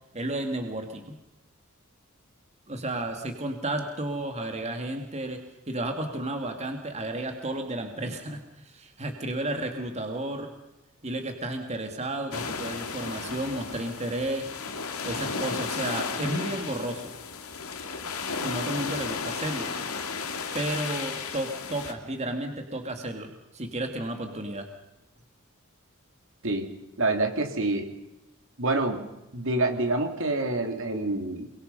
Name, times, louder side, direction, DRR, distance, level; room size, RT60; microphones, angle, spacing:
voice 1, 0.1-1.0 2.7-5.4 5.7-10.5 11.0-14.5 15.0-17.1 18.4-19.7 20.5-23.3 23.5-24.7, right 1 dB, 30° right, 4 dB, 2.4 m, -32 dB
sound 1, 12.3-21.9, left 5 dB, 80° left, 2.7 m, -34 dB
voice 2, 27.0-27.9 28.6-29.0 29.3-31.5, right 2 dB, 65° right, 5 dB, 3.1 m, -27 dB
28.5 x 23.5 x 5.6 m, 0.98 s
head